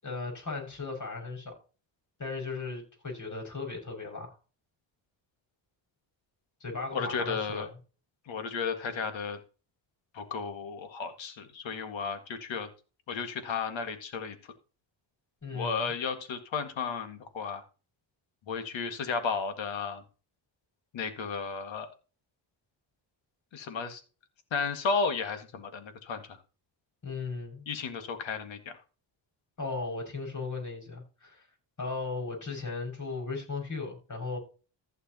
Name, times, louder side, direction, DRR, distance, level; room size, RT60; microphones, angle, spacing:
voice 1, 0.0-1.5 2.2-4.4 6.6-7.7 15.4-15.9 27.0-27.6 29.6-31.5 31.8-34.4, left 3 dB, 40° left, 1 dB, 6.5 m, -36 dB
voice 2, 6.9-7.7 8.3-9.4 10.1-12.7 13.1-14.5 15.5-17.6 18.5-20.0 20.9-21.9 23.5-24.0 24.5-26.4 27.7-28.8, left 5 dB, 85° left, 7 dB, 2.0 m, -33 dB
15.0 x 6.6 x 3.0 m, 0.34 s
cardioid pair, 90°, 45 cm